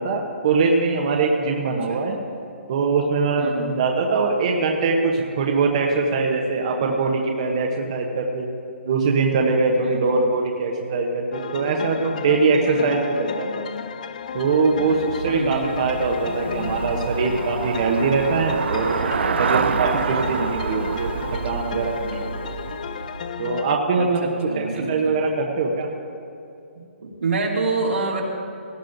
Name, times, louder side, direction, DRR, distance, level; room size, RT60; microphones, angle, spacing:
voice 1, 0.0-2.2 2.7-8.5 8.9-13.7 14.3-21.1 21.4-22.3 23.4-25.9, right 4 dB, 30° right, 1 dB, 0.9 m, -22 dB
voice 2, 1.6-2.1 3.4-3.8 9.8-10.3 12.7-12.9 15.3-15.9 24.0-25.2 26.7-28.2, right 3 dB, 85° right, -2 dB, 2.5 m, -28 dB
sound 1, 11.3-23.8, left 7 dB, 35° left, 0.3 m, -33 dB
Traffic noise roadway noise / Bicycle, 14.4-23.6, right 6 dB, 60° right, 0.5 m, -28 dB
18.0 x 12.5 x 2.6 m, 2.6 s
hypercardioid pair, 170°, 7 cm